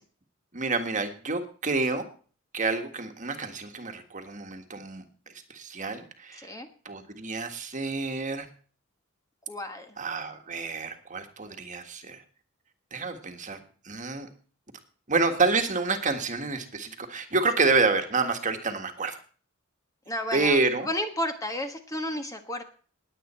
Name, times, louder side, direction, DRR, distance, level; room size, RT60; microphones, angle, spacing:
voice 1, 0.5-2.0 2.5-5.0 5.5-6.5 6.9-8.5 10.0-12.2 12.9-13.6 13.8-14.3 15.1-19.2 20.3-20.9, right 3 dB, 40° right, 6 dB, 1.7 m, -28 dB
voice 2, 6.4-6.7 9.5-9.9 20.1-20.6 20.8-22.6, left 1 dB, 15° left, 6 dB, 1.3 m, -32 dB
20.0 x 8.2 x 4.4 m, 0.41 s
head